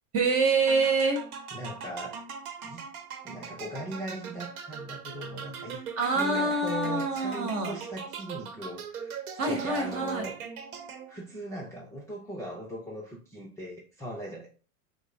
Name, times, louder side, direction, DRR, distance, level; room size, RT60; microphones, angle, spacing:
voice 1, 0.1-1.2 6.0-7.7 9.4-10.2, right 3 dB, 30° right, 3 dB, 1.3 m, -26 dB
sound 1, 0.7-11.3, right 6 dB, 70° right, 0.9 m, -41 dB
voice 2, 1.5-2.2 2.6-2.9 3.2-10.4 11.1-14.5, right 1 dB, 5° left, -4 dB, 0.5 m, -39 dB
5.0 x 2.0 x 3.6 m, 0.38 s
hypercardioid pair, 110°, 45 cm